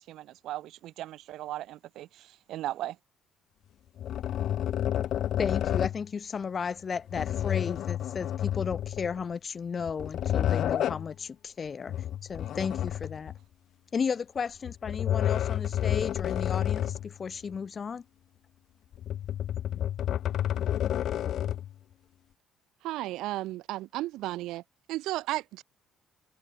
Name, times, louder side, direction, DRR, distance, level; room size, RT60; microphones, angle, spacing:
voice 1, 0.0-3.0, right 14 dB, 60° right, 3.7 m, -38 dB
sound 1, 4.0-6.1 7.1-9.2 9.8-11.1 11.9-13.4 14.6-17.1 17.5-17.6 18.9-21.7, left 11 dB, 45° left, 0.7 m, -30 dB
voice 2, 5.4-11.9 12.3-13.3 13.9-18.0, left 6 dB, 25° left, 1.3 m, -34 dB
voice 3, 22.8-24.6 24.9-25.6, right 16 dB, 80° right, 2.3 m, -33 dB
cardioid pair, 180°, 0 cm